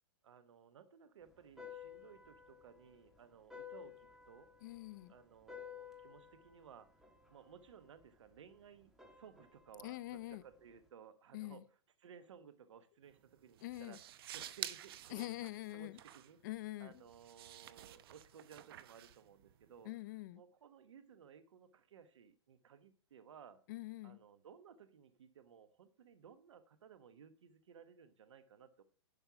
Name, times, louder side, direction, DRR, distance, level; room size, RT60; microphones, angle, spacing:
voice 1, 0.2-4.5 5.1-6.9 7.3-11.6 12.0-14.0 14.3-15.3 15.7-16.4 16.8-19.9 20.3-23.6 24.0-28.8, right 7 dB, 85° right, 1.2 m, -59 dB
sound 1, 1.2-10.9, left 8 dB, 5° right, 1.3 m, -56 dB
voice 2, 4.6-5.1 9.8-10.4 11.3-11.6 13.6-14.0 15.1-16.0 16.4-17.0 19.8-20.4 23.7-24.2, left 18 dB, 45° left, 0.4 m, -45 dB
sound 2, 13.0-19.9, right 12 dB, 55° right, 0.7 m, -51 dB
11.0 x 5.4 x 5.8 m
hypercardioid pair, 155°, 15 cm